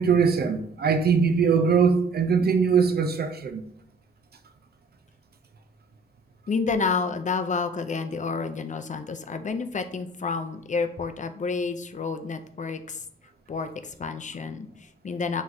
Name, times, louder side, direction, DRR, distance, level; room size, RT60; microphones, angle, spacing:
voice 1, 0.0-3.6, right 6 dB, 80° right, 0.4 m, -21 dB
voice 2, 6.5-13.0 13.5-15.4, left 4 dB, 50° left, 0.4 m, -29 dB
5.6 x 3.1 x 2.6 m
wide cardioid pair, 75°, 16 cm